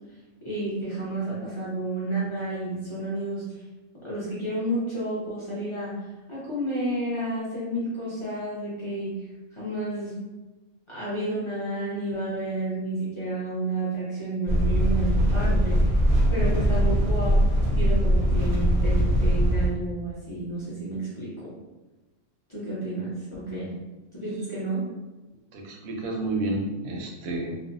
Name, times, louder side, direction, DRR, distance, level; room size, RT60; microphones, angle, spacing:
voice 1, 0.4-3.5 4.0-6.0 6.3-9.2 9.5-10.2 10.9-15.9 16.3-17.4 17.7-21.5 22.5-23.7 24.1-24.8, right 1 dB, 35° left, -9 dB, 0.5 m, -31 dB
sound 1, 14.5-19.7, equal, 45° right, 0.6 m, -21 dB
voice 2, 25.5-27.6, right 2 dB, 85° right, 0 dB, 1.0 m, -30 dB
2.5 x 2.0 x 2.5 m, 1.1 s
omnidirectional pair, 1.4 m